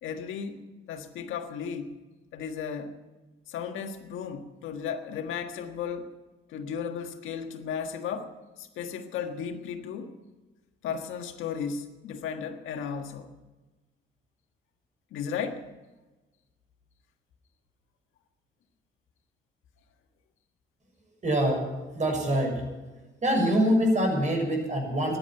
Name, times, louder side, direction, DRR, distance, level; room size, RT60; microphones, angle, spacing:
voice 1, 0.0-1.9 2.3-3.0 3.5-6.1 6.5-10.2 10.8-13.3 15.1-15.6, left 7 dB, 85° left, 6 dB, 1.6 m, -35 dB
voice 2, 21.2-21.7 21.9-22.7 23.2-25.2, equal, 40° right, 2 dB, 6.5 m, -24 dB
14.5 x 11.0 x 9.0 m, 1.2 s
cardioid pair, 90°, 20 cm